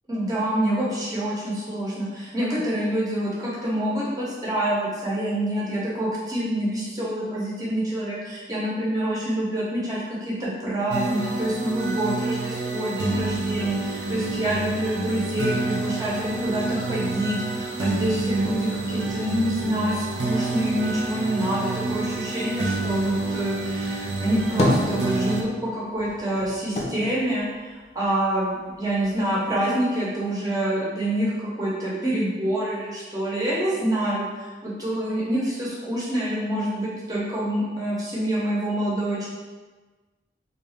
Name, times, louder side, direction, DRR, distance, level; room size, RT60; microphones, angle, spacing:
voice 1, 0.1-27.4 27.9-39.3, right 1 dB, 20° right, -7 dB, 1.0 m, -26 dB
sound 1, 10.9-25.4, right 3 dB, 65° right, 0.6 m, -29 dB
sound 2, 24.6-25.6 25.9-28.3 28.7-29.6, left 1 dB, 35° left, 0.5 m, -28 dB
3.8 x 2.7 x 3.5 m, 1.3 s
head